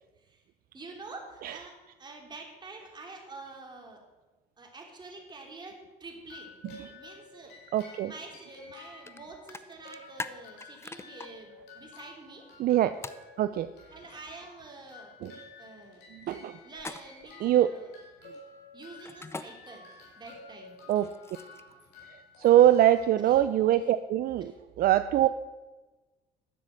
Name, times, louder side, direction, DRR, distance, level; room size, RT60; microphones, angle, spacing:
voice 1, 0.7-4.0 4.6-6.6 7.0-7.7 8.0-12.5 13.9-15.1 15.6-16.0 16.6-17.9 18.7-19.9 20.2-20.7 23.2-23.4 23.7-23.8 24.4-24.5, right 3 dB, 25° right, 1 dB, 3.2 m, -47 dB
sound 1, 6.2-23.7, left 3 dB, 80° left, 4.7 m, -52 dB
voice 2, 7.7-8.1 12.6-12.9 13.4-13.7 15.2-15.3 16.1-16.6 17.4-17.7 20.9-21.1 22.1-25.3, right 12 dB, 60° right, 11 dB, 0.5 m, -23 dB
sound 2, 9.1-9.2 9.5-11.3 13.0-13.2 16.7-17.3 19.0-19.5 20.8-21.7, left 3 dB, 15° left, 0.6 m, -40 dB
11.0 x 7.5 x 7.7 m, 1.2 s
cardioid pair, 110°, 17 cm